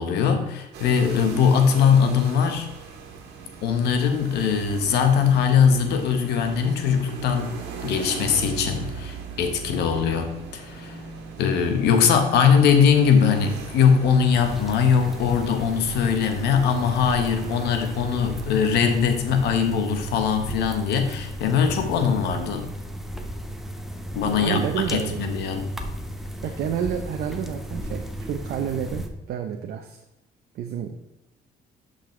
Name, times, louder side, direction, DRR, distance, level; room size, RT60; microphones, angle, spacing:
voice 1, 0.0-2.7 3.6-7.6 7.8-11.0 11.4-22.7 24.1-24.6 24.9-25.6, left 7 dB, 80° left, 6 dB, 1.2 m, -21 dB
sound 1, 0.7-19.0, right 6 dB, 85° right, 1.6 m, -39 dB
sound 2, 14.3-29.1, equal, ahead, 0.9 m, -35 dB
voice 2, 24.3-25.2 26.4-30.0 30.5-31.0, right 8 dB, 65° right, 5 dB, 0.7 m, -29 dB
10.5 x 5.4 x 3.2 m, 0.96 s
cardioid pair, 110°, 17 cm